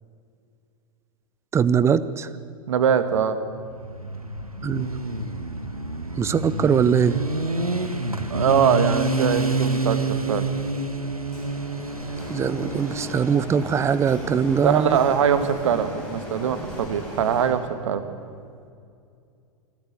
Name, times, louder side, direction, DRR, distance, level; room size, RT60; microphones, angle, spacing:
voice 1, 1.5-2.3 4.6-4.9 6.2-7.2 12.3-15.0, right 7 dB, 15° right, 17 dB, 0.7 m, -21 dB
voice 2, 2.7-3.4 8.3-10.0 10.3-10.5 14.6-18.0, right 8 dB, 60° right, 11 dB, 1.7 m, -22 dB
Motorcycle, 3.7-15.4, right 2 dB, 90° right, 1.4 m, -28 dB
Printer, 11.3-17.5, equal, 5° left, 7.6 m, -37 dB
26.5 x 13.0 x 8.1 m, 2.4 s
figure-of-eight pair, 100°, 18 cm